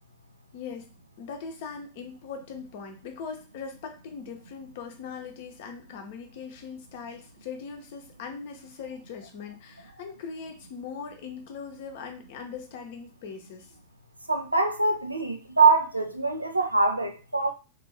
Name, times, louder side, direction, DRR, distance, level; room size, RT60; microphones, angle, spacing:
voice 1, 0.5-0.9 1.2-13.7, left 6 dB, 50° left, 0.7 m, -40 dB
voice 2, 14.3-17.5, right 4 dB, 85° right, 0.4 m, -23 dB
3.0 x 2.6 x 3.2 m
figure-of-eight pair, 90°, 0 cm